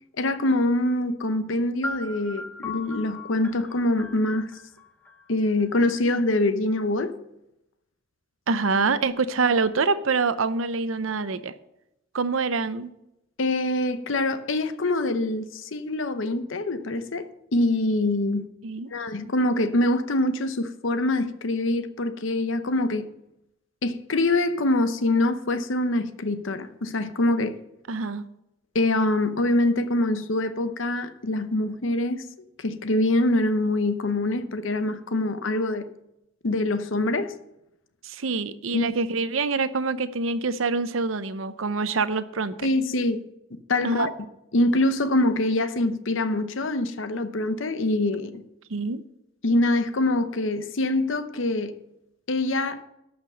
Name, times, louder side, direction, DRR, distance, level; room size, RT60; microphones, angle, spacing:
voice 1, 0.2-4.5 5.3-7.2 13.4-18.5 18.9-23.1 23.8-27.6 28.7-32.2 32.6-35.9 36.4-37.3 38.7-38.9 42.6-43.2 43.7-44.1 44.5-48.4 49.4-51.7 52.3-52.8, left 2 dB, 75° left, 0.8 m, -24 dB
sound 1, 1.8-5.7, left 2 dB, 10° left, 0.7 m, -38 dB
voice 2, 8.5-11.5 12.1-12.9 18.6-18.9 27.9-28.2 38.0-42.7 43.8-44.1 48.7-49.0, right 4 dB, 85° right, 0.7 m, -25 dB
12.0 x 6.0 x 6.3 m
head